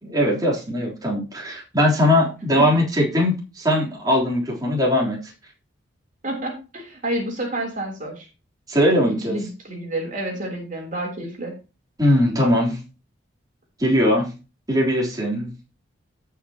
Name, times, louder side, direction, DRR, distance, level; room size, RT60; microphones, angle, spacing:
voice 1, 0.0-5.2 8.7-9.4 12.0-12.8 13.8-14.3 14.7-15.6, left 1 dB, 20° right, -3 dB, 3.4 m, -20 dB
voice 2, 6.2-8.3 8.9-11.5, right 1 dB, 45° right, 1 dB, 3.4 m, -29 dB
17.5 x 5.9 x 2.9 m, 0.31 s
head